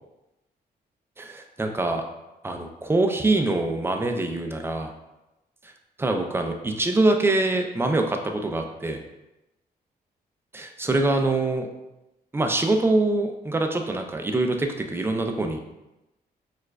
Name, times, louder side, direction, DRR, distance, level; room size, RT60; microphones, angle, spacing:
voice 1, 1.2-2.0 2.4-4.9 6.0-9.0 10.5-11.7 12.3-15.6, right 2 dB, 15° right, 4 dB, 0.4 m, -24 dB
4.5 x 2.4 x 2.2 m, 0.96 s
cardioid pair, 100°, 17 cm